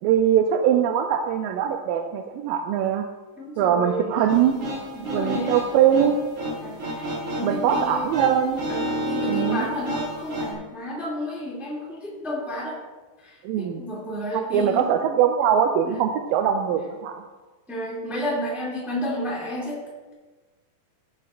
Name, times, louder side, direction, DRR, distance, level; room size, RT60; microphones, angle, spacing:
voice 1, 0.0-3.0 3.6-4.6 5.1-6.2 7.4-8.6 9.2-9.7 13.4-13.8 14.3-17.2, right 9 dB, 80° right, 4 dB, 2.2 m, -22 dB
voice 2, 3.4-5.5 6.6-8.1 8.7-12.8 13.2-15.0 15.8-16.0 17.7-19.8, equal, ahead, -5 dB, 1.6 m, -31 dB
sound 1, 4.3-10.5, equal, 45° right, 3.1 m, -31 dB
17.5 x 7.6 x 2.5 m, 1.3 s
omnidirectional pair, 4.2 m